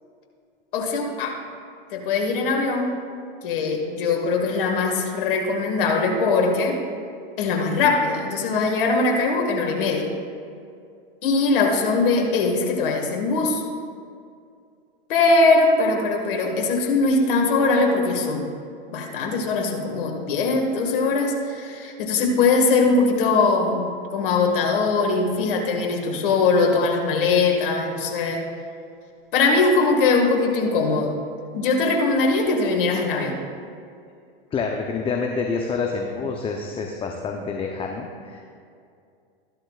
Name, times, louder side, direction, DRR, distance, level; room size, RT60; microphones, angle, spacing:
voice 1, 0.7-1.4 1.9-2.9 3.4-6.8 7.4-10.1 11.2-13.6 15.1-18.5 18.9-28.4 29.3-31.2 31.5-33.4, left 3 dB, 65° left, 1 dB, 2.0 m, -21 dB
voice 2, 34.5-38.4, left 4 dB, 20° left, 2 dB, 0.7 m, -27 dB
14.0 x 11.5 x 2.4 m, 2.3 s
hypercardioid pair, 110°, 29 cm